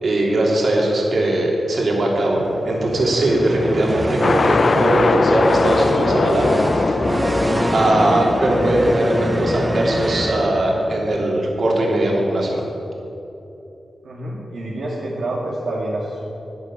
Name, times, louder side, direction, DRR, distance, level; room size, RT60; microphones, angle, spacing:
voice 1, 0.0-7.0 7.7-12.6, right 1 dB, 60° right, -2 dB, 3.3 m, -19 dB
sound 1, 2.4-11.1, right 1 dB, 15° right, 0.6 m, -26 dB
sound 2, 4.2-11.8, left 4 dB, 50° left, 0.4 m, -22 dB
voice 2, 14.0-16.2, right 1 dB, 80° right, -5 dB, 2.3 m, -27 dB
11.5 x 10.5 x 8.6 m, 3.0 s
wide cardioid pair, 100°, 0 cm